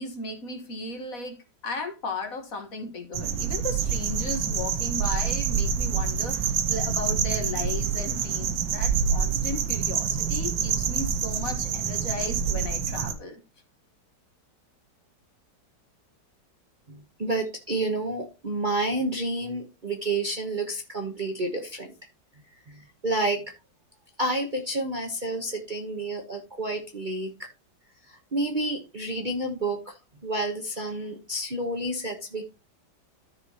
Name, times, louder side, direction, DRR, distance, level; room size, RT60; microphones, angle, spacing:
voice 1, 0.0-1.4 1.6-13.4, left 2 dB, 50° left, 1.8 m, -35 dB
sound 1, 3.1-13.1, right 7 dB, 75° right, 1.5 m, -27 dB
voice 2, 16.9-21.9 22.7-23.5 24.2-27.5 28.1-32.4, right 2 dB, 35° right, 1.0 m, -30 dB
14.0 x 4.8 x 2.9 m
omnidirectional pair, 2.0 m